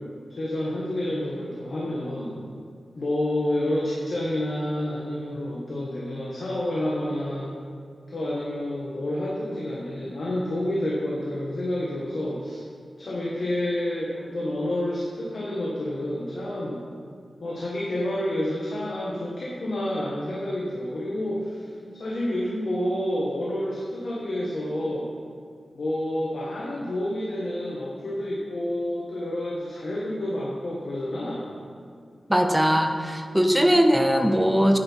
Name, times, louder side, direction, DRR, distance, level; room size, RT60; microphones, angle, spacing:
voice 1, 0.4-2.4 3.0-7.5 8.1-12.6 13.0-16.8 17.4-25.1 25.7-31.5, left 1 dB, 60° left, -5 dB, 1.7 m, -29 dB
voice 2, 32.3-34.8, equal, 5° right, 5 dB, 0.7 m, -20 dB
9.8 x 9.6 x 4.7 m, 2.3 s
wide cardioid pair, 115°, 0 cm